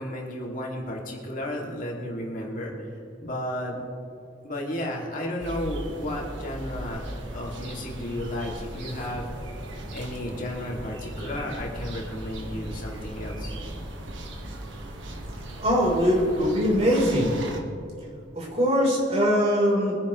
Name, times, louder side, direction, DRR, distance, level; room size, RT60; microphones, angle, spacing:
voice 1, 0.0-2.7 3.2-3.8 4.4-7.1 7.3-9.5 9.9-13.5, left 1 dB, 45° left, -2 dB, 2.4 m, -33 dB
sound 1, 5.4-17.6, right 1 dB, 80° right, 1.6 m, -37 dB
voice 2, 15.6-17.3 18.4-20.0, equal, 35° right, -3 dB, 3.9 m, -22 dB
23.5 x 10.5 x 3.2 m, 2.6 s
head